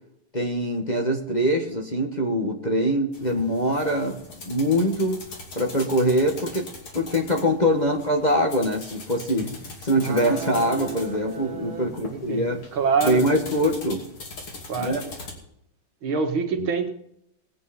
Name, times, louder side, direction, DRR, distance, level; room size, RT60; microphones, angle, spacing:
voice 1, 0.3-4.2 4.5-5.2 5.5-6.7 6.9-12.6 13.0-14.1 14.8-15.0 16.6-16.7, equal, 25° left, 0 dB, 1.4 m, -23 dB
sound 1, 3.1-15.3, left 3 dB, 85° left, 3.7 m, -41 dB
voice 2, 10.0-13.2 14.7-15.0 16.0-16.9, right 5 dB, 80° right, 5 dB, 2.4 m, -27 dB
21.5 x 8.7 x 4.3 m, 0.76 s
omnidirectional pair, 2.2 m